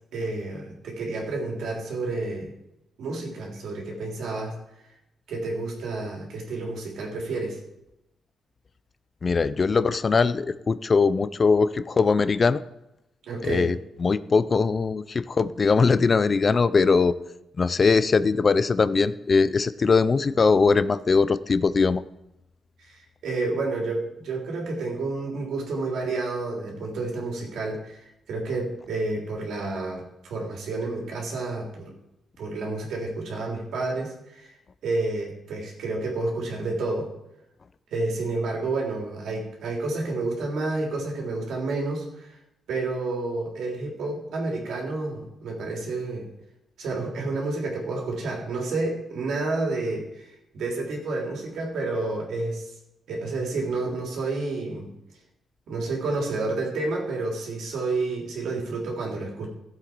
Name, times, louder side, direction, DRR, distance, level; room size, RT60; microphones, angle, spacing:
voice 1, 0.1-2.5 3.0-4.5 5.3-7.6 13.2-13.7 22.8-31.9 32.4-34.5 34.8-37.1 37.9-42.4 42.7-46.3 46.8-52.7 53.1-54.9 55.7-59.5, right 3 dB, 80° right, -1 dB, 3.5 m, -30 dB
voice 2, 9.2-12.6 13.4-17.2 17.6-22.0, left 4 dB, 30° left, 15 dB, 0.4 m, -21 dB
16.0 x 7.8 x 4.6 m, 0.88 s
wide cardioid pair, 150°, 0 cm